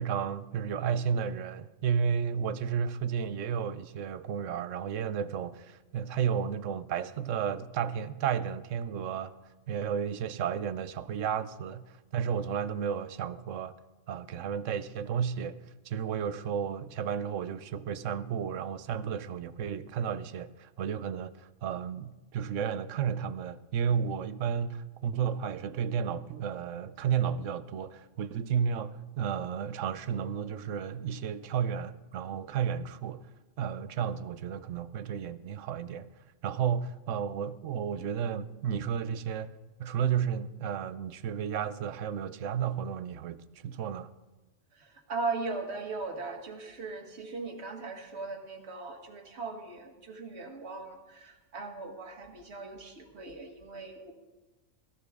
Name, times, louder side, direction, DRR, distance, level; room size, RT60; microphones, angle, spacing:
voice 1, 0.0-9.3 9.7-13.7 14.1-15.6 15.8-33.3 33.6-36.1 36.4-39.5 39.8-44.1, right 7 dB, 70° right, 1.0 m, -32 dB
voice 2, 44.8-54.1, right 3 dB, 55° right, 1.8 m, -38 dB
17.0 x 14.0 x 3.6 m
omnidirectional pair, 1.4 m